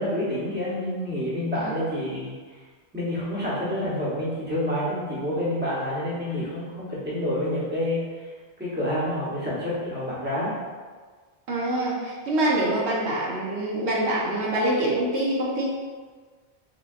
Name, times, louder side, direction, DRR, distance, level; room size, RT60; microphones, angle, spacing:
voice 1, 0.0-2.4 2.9-8.3 8.6-10.5, left 1 dB, 10° right, -8 dB, 0.9 m, -28 dB
voice 2, 11.5-15.7, right 1 dB, 80° right, -5 dB, 1.1 m, -25 dB
3.7 x 3.3 x 2.4 m, 1.5 s
omnidirectional pair, 1.1 m